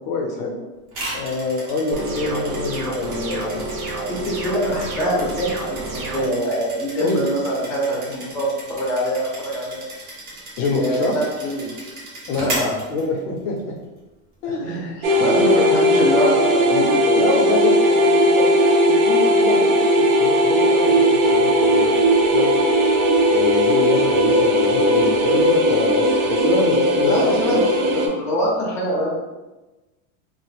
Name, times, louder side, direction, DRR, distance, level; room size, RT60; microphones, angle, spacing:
voice 1, 0.1-0.5 1.1-3.6 7.0-7.3 10.6-11.2 12.3-12.6 12.9-13.7 14.4-15.0 15.3-15.4 16.7-18.5 18.8-22.7 23.2-27.6, left 3 dB, 50° left, 0 dB, 0.6 m, -25 dB
sound 1, 0.9-13.6, right 1 dB, 50° right, 1.2 m, -35 dB
sound 2, 1.9-6.3, right 2 dB, 30° right, 0.4 m, -29 dB
voice 2, 4.1-9.8 10.7-11.7 12.4-12.7 14.5-17.3 27.0-29.1, equal, 5° left, -5 dB, 0.6 m, -24 dB
sound 3, 15.0-28.1, equal, 75° right, 0.7 m, -17 dB
3.2 x 2.0 x 3.3 m, 1.1 s
supercardioid pair, 140°, 45 cm